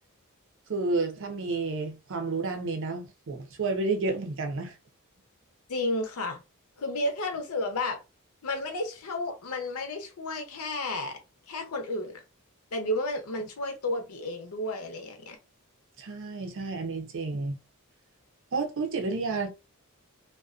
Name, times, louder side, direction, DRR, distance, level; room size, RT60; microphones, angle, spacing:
voice 1, 0.7-4.8 16.0-17.6 18.5-19.5, right 3 dB, 60° right, 0.6 m, -30 dB
voice 2, 5.7-6.4 6.8-8.0 8.4-11.2 11.5-12.2 12.7-15.4, left 1 dB, 80° left, 0.7 m, -32 dB
2.3 x 2.2 x 2.4 m
head